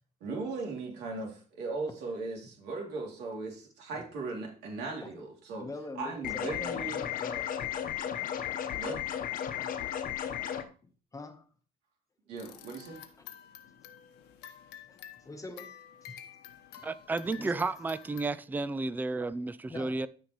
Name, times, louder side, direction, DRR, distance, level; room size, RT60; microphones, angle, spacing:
voice 1, 0.2-5.7 5.9-7.0 8.8-9.0 12.3-13.0, right 3 dB, 85° right, 2.7 m, -38 dB
voice 2, 5.6-7.5 9.6-9.8 10.8-11.5 12.5-12.6 13.2-13.3 14.9-15.8 16.0-16.2 16.8-16.9 17.4-17.7 19.7-20.1, left 3 dB, 20° left, 1.1 m, -44 dB
sound 1, 6.2-10.6, left 9 dB, 55° left, 1.0 m, -34 dB
sound 2, 12.4-18.3, left 10 dB, 85° left, 1.2 m, -50 dB
voice 3, 16.8-20.1, right 3 dB, 10° right, 0.4 m, -32 dB
13.0 x 5.3 x 3.1 m
cardioid pair, 110°, 17 cm